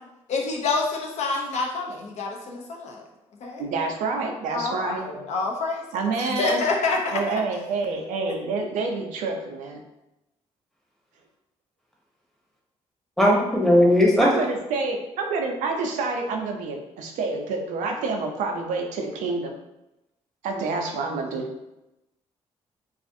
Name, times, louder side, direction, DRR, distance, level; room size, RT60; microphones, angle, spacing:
voice 1, 0.3-3.0 3.4-3.7 4.5-5.8 6.2-7.5, left 3 dB, 65° left, 1 dB, 0.5 m, -27 dB
voice 2, 3.6-5.3 5.9-6.6 7.1-9.8 14.2-19.5 20.4-21.5, right 3 dB, 85° right, 2 dB, 0.4 m, -28 dB
voice 3, 13.2-14.3, left 1 dB, ahead, -3 dB, 0.8 m, -17 dB
2.4 x 2.4 x 2.5 m, 0.92 s
cardioid pair, 75°, 13 cm